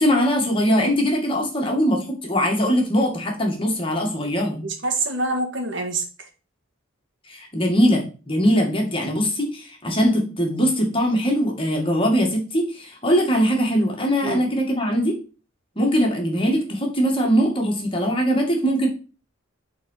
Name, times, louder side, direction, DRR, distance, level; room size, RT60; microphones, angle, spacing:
voice 1, 0.0-4.7 7.3-15.1 15.8-18.9, equal, 25° left, 1 dB, 2.3 m, -21 dB
voice 2, 4.6-6.0 14.2-14.4, right 2 dB, 60° right, 4 dB, 2.0 m, -25 dB
10.5 x 4.4 x 5.7 m, 0.36 s
head